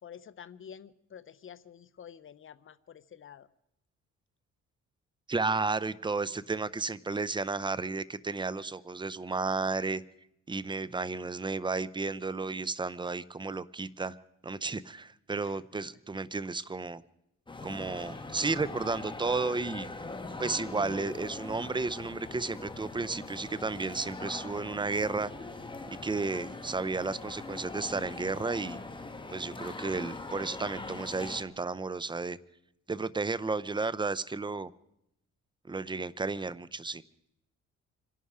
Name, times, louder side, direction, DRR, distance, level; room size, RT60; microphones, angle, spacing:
voice 1, 0.0-3.5 15.4-15.8, left 8 dB, 45° left, 14 dB, 0.9 m, -49 dB
voice 2, 5.3-10.0 10.5-14.2 14.4-17.0 17.6-19.9 20.4-25.3 25.9-28.8 29.3-32.4 32.9-34.7 35.7-37.0, right 3 dB, 15° right, 18 dB, 0.6 m, -33 dB
sound 1, 17.5-31.4, left 3 dB, 15° left, 1.7 m, -42 dB
26.0 x 11.0 x 4.9 m, 0.80 s
cardioid pair, 90°, 30 cm